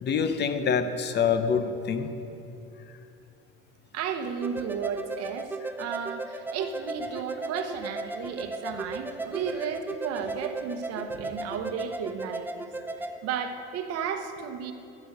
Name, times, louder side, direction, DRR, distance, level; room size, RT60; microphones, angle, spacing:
voice 1, 0.0-2.1, left 6 dB, 35° left, 10 dB, 0.7 m, -26 dB
voice 2, 3.9-12.7 12.9-14.7, right 7 dB, 50° right, 7 dB, 1.0 m, -34 dB
sound 1, 4.4-13.1, right 2 dB, 5° right, 0.5 m, -36 dB
12.5 x 5.4 x 6.6 m, 2.8 s
supercardioid pair, 110°, 31 cm